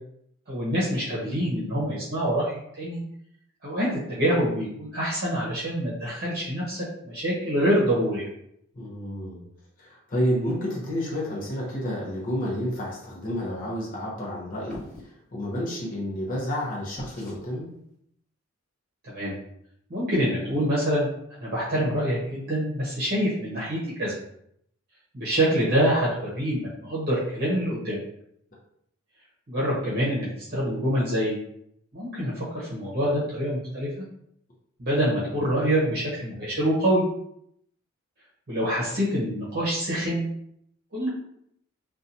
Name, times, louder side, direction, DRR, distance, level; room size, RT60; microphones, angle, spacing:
voice 1, 0.5-3.0 3.6-8.3 19.0-19.4 19.9-21.1 21.4-24.1 25.1-28.0 29.5-30.3 30.5-31.4 31.9-33.9 34.8-37.0 38.5-40.3 40.9-41.1, equal, 50° right, -7 dB, 0.8 m, -26 dB
voice 2, 8.7-9.4 9.8-17.7, equal, 40° left, -4 dB, 0.7 m, -30 dB
sound 1, 14.7-15.1 17.0-17.4, left 1 dB, 15° left, 1.1 m, -41 dB
2.7 x 2.3 x 2.6 m, 0.71 s
head